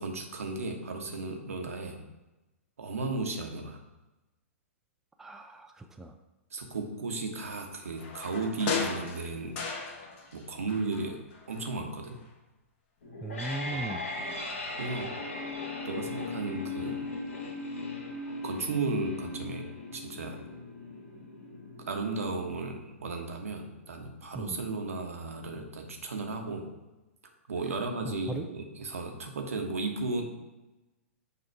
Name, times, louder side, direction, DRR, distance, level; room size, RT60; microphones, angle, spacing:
voice 1, 0.0-2.0 2.8-3.8 6.5-9.6 10.3-11.2 11.5-12.2 13.7-13.8 14.8-15.1 15.8-17.1 18.4-19.6 19.9-20.4 21.9-26.7 27.5-30.2, right 3 dB, 75° right, 3 dB, 1.1 m, -34 dB
voice 2, 5.2-6.1 13.2-14.0 24.3-24.6 28.0-28.5, right 1 dB, 5° right, 5 dB, 0.4 m, -37 dB
sound 1, 8.0-10.4 10.7-11.8 12.1-12.2, left 5 dB, 40° left, 1.1 m, -36 dB
sound 2, 13.0-24.0, left 3 dB, 70° left, 1.8 m, -39 dB
6.9 x 3.0 x 4.5 m, 1.0 s
figure-of-eight pair, 115°, 8 cm